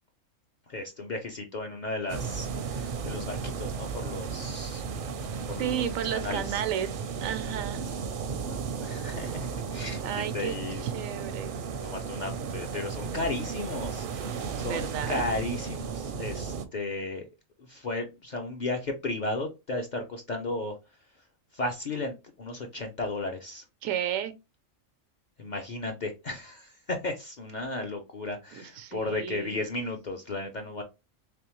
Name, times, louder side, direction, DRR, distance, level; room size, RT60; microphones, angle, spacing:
voice 1, 0.7-4.8 5.2-5.9 6.1-6.6 8.8-10.8 11.8-17.2 17.7-20.8 21.5-23.6 25.4-30.8, left 2 dB, 50° left, 0.5 m, -34 dB
sound 1, 2.1-16.7, right 6 dB, 60° right, 0.6 m, -34 dB
voice 2, 5.6-6.9 7.2-7.9 10.0-11.5 14.6-15.2 23.8-24.3 28.5-29.6, right 9 dB, 90° right, 1.0 m, -32 dB
3.4 x 3.4 x 3.0 m
omnidirectional pair, 1.3 m